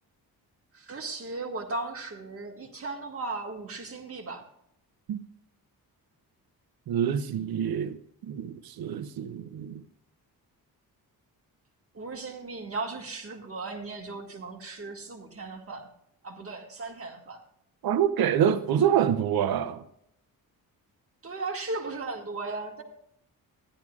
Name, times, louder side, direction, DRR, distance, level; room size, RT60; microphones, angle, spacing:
voice 1, 0.7-4.4 11.9-15.9 16.2-17.4 21.2-22.8, right 3 dB, 40° right, 1.9 m, -36 dB
voice 2, 6.9-8.0 8.3-9.8 17.8-19.8, right 9 dB, 75° right, 0.7 m, -26 dB
15.0 x 11.0 x 2.4 m
cardioid pair, 125°, 37 cm